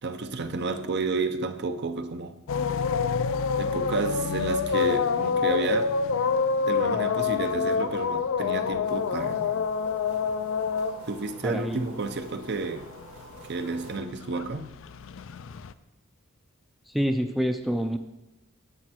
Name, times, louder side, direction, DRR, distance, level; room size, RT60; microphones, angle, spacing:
voice 1, 0.0-2.4 3.5-5.9 6.6-9.7 11.1-12.9 13.5-14.7, right 3 dB, 50° right, 0.7 m, -31 dB
sound 1, 2.5-12.5 12.8-15.7, left 5 dB, 65° left, 0.4 m, -27 dB
sound 2, 8.8-14.0, right 1 dB, 75° right, 3.9 m, -48 dB
voice 2, 11.4-11.8 16.9-18.0, equal, ahead, 0.4 m, -27 dB
10.5 x 7.7 x 4.3 m
head